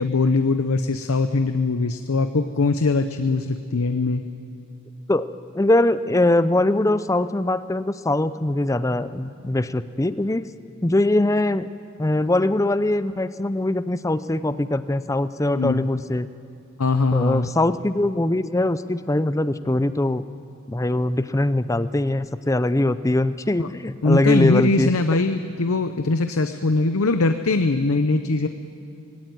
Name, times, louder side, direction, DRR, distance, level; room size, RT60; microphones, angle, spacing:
voice 1, 0.0-4.2 15.5-15.9 16.8-17.5 23.6-23.7 24.0-28.5, left 3 dB, 75° left, 9 dB, 0.7 m, -21 dB
voice 2, 5.5-10.5 10.8-11.7 12.0-16.3 17.1-20.2 20.7-24.9, left 1 dB, 15° left, 14 dB, 0.4 m, -22 dB
20.5 x 17.0 x 9.3 m, 2.8 s
head